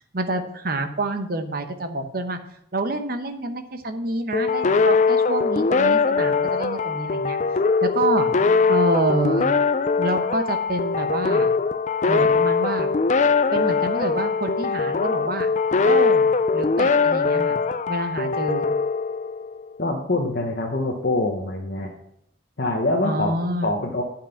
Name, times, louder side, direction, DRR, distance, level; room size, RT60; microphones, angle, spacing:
voice 1, 0.1-2.4 2.7-7.4 7.8-8.3 8.7-9.5 10.0-11.5 12.1-12.9 13.5-15.5 15.8-17.6 17.9-18.7 23.0-23.7, right 2 dB, 50° right, 7 dB, 0.9 m, -27 dB
sound 1, 4.3-19.7, left 4 dB, 40° left, 0.4 m, -21 dB
voice 2, 19.8-21.9 22.6-24.0, left 2 dB, 55° left, 0 dB, 1.0 m, -25 dB
9.0 x 5.8 x 5.6 m, 0.74 s
head